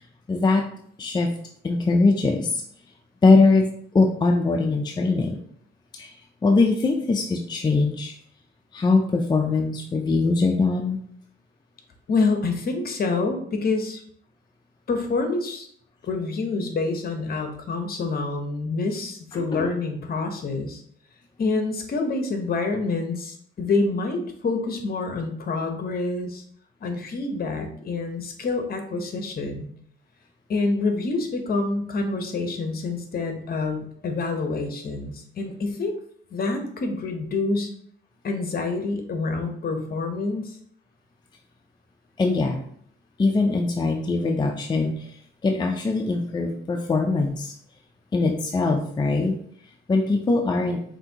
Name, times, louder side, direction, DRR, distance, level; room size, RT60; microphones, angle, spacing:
voice 1, 0.3-0.7 1.0-1.3 1.6-2.6 3.2-5.4 5.9-6.1 6.4-8.1 8.7-11.0 19.3-19.7 42.2-42.6 43.2-45.2 45.4-47.5 48.1-49.4 49.9-50.8, left 3 dB, 20° left, 3 dB, 0.4 m, -22 dB
voice 2, 12.1-14.0 14.9-15.7 16.1-20.8 21.4-26.4 26.8-29.7 30.5-36.0 36.3-37.7 38.2-40.6, left 3 dB, 50° left, 5 dB, 0.9 m, -27 dB
6.1 x 2.6 x 2.8 m, 0.62 s
cardioid pair, 90°, 20 cm